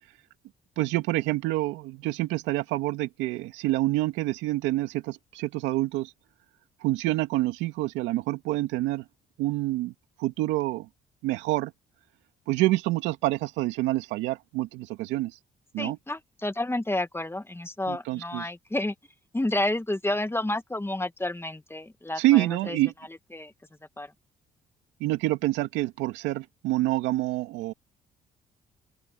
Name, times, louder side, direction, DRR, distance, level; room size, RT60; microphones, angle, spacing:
voice 1, 0.8-6.1 6.8-9.0 9.4-9.9 10.2-10.9 11.2-11.7 12.5-15.4 15.7-16.0 17.9-18.5 22.2-22.9 25.0-27.7, right 17 dB, 85° right, 2.4 m, -27 dB
voice 2, 15.8-18.9 19.3-22.8 23.3-23.5 24.0-24.1, left 1 dB, 15° left, 2.2 m, -30 dB
open air
supercardioid pair, 55°, 18 cm